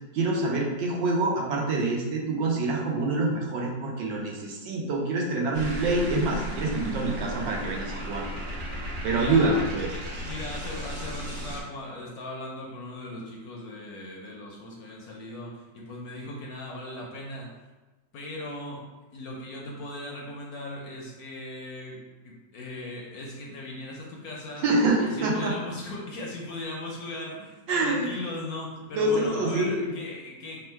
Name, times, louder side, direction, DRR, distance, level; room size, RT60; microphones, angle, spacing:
voice 1, 0.1-8.2 9.0-9.9 24.6-25.5 27.7-28.1 28.9-29.9, right 2 dB, 85° right, -1 dB, 1.5 m, -26 dB
sound 1, 5.5-11.6, equal, 60° right, 1.2 m, -35 dB
voice 2, 9.1-9.6 10.2-17.5 18.1-18.8 19.1-24.7 25.0-30.6, left 1 dB, 65° left, -2 dB, 1.0 m, -38 dB
3.6 x 2.2 x 4.4 m, 1.2 s
omnidirectional pair, 2.0 m